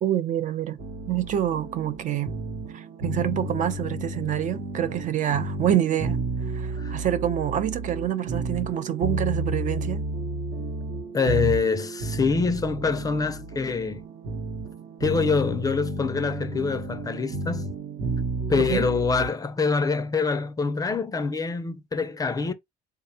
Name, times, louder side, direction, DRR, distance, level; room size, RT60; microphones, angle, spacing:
voice 1, 0.0-0.8 1.1-2.3 2.7-6.2 6.5-10.0 18.6-18.9, right 11 dB, 50° right, 0.4 m, -27 dB
sound 1, 0.8-19.3, right 2 dB, 65° right, 0.9 m, -32 dB
voice 2, 11.1-14.0 15.0-17.7 18.5-22.5, left 4 dB, 20° left, 0.4 m, -25 dB
3.5 x 2.2 x 2.6 m
cardioid pair, 110°, 17 cm